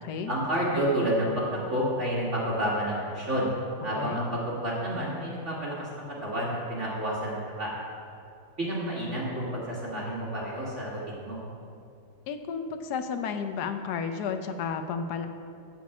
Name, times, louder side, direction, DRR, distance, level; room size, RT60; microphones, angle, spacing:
voice 1, 0.3-1.4 1.7-7.7 8.6-11.4, equal, 35° right, -6 dB, 2.2 m, -30 dB
voice 2, 12.3-15.3, left 6 dB, 65° left, 7 dB, 1.2 m, -32 dB
12.5 x 4.6 x 8.4 m, 2.5 s
omnidirectional pair, 2.2 m